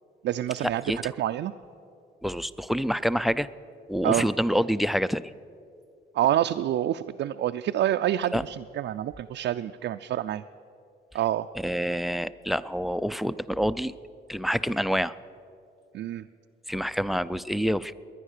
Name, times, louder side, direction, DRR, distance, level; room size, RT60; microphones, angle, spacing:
voice 1, 0.2-1.5 4.0-4.3 6.1-10.4 11.1-11.5 15.9-16.2, right 12 dB, 65° right, 7 dB, 0.4 m, -27 dB
voice 2, 2.2-3.5 3.9-5.2 8.3-8.4 11.6-13.9 14.3-15.1 16.7-17.9, equal, ahead, 17 dB, 0.4 m, -27 dB
21.0 x 9.9 x 6.6 m, 2.5 s
cardioid pair, 90°, 20 cm